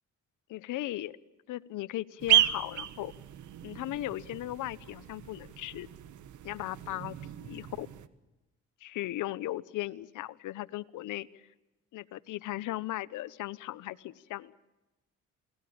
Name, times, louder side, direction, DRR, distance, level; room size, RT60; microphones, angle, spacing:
voice 1, 0.5-1.2 1.5-3.1 3.6-5.9 6.4-7.2 7.4-7.9 8.8-11.4 11.9-14.5, left 15 dB, 85° left, 15 dB, 1.0 m, -37 dB
sound 1, 2.2-8.1, right 11 dB, 75° right, 1.5 m, -32 dB
29.5 x 19.5 x 8.7 m, 1.0 s
cardioid pair, 90°, 30 cm